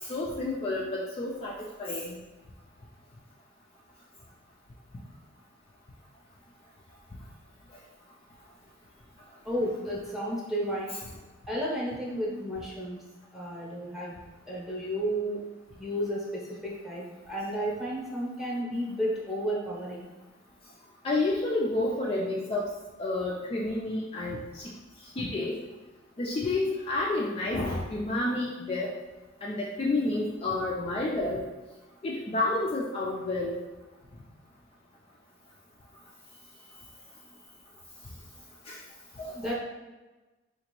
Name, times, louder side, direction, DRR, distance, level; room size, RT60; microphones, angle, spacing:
voice 1, 0.0-2.2 21.0-22.7 23.0-24.6 25.2-25.6 26.2-28.9 29.4-31.4 32.0-33.6 38.7-38.8 39.2-39.4, left 2 dB, 30° left, -4 dB, 0.3 m, -30 dB
voice 2, 9.4-10.9 11.5-13.0 13.3-14.1 14.5-15.4 15.8-20.1 39.3-39.5, equal, ahead, -4 dB, 0.8 m, -32 dB
3.9 x 2.5 x 3.0 m, 1.2 s
head